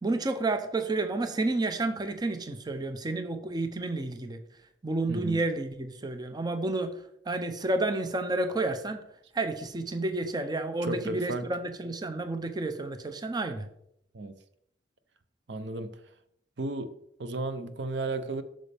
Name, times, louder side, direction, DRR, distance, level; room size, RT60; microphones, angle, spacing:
voice 1, 0.0-4.4 4.8-6.9 7.3-9.0 9.3-13.7, right 2 dB, 25° right, 0.5 m, -30 dB
voice 2, 5.1-5.4 10.8-11.5 14.1-14.4 15.5-16.0 16.6-16.9 17.2-18.4, right 2 dB, 70° right, 0.7 m, -33 dB
8.2 x 6.4 x 3.4 m
head